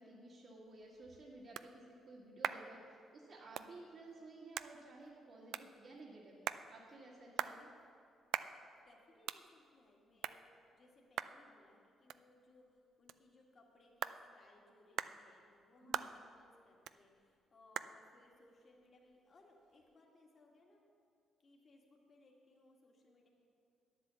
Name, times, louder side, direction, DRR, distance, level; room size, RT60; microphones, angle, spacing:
voice 1, 0.0-7.7 15.8-16.1, right 2 dB, 60° right, -7 dB, 2.0 m, -55 dB
sound 1, 0.7-20.0, right 10 dB, 80° right, 0.3 m, -47 dB
voice 2, 8.8-20.8 21.4-23.3, left 2 dB, 45° left, -1 dB, 1.9 m, -66 dB
9.8 x 8.2 x 7.0 m, 2.4 s
cardioid pair, 90°, 0 cm